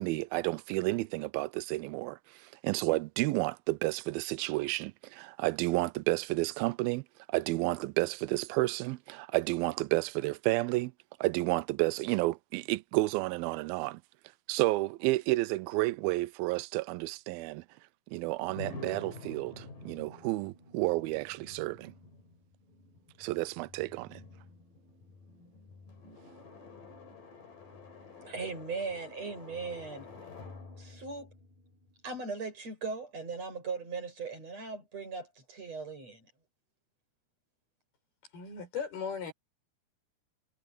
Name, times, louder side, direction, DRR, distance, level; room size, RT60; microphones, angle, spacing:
voice 1, 0.0-7.0 7.3-10.9 11.2-14.0 14.5-17.6 18.1-21.9 23.2-24.2, right 21 dB, 80° right, 2.4 m, -31 dB
sound 1, 18.5-32.3, left 3 dB, 60° left, 6.1 m, -49 dB
voice 2, 28.2-30.1 30.8-31.3 32.0-36.3, right 4 dB, 40° right, 8.5 m, -38 dB
voice 3, 38.3-39.3, left 6 dB, 80° left, 8.0 m, -37 dB
omnidirectional pair, 4.4 m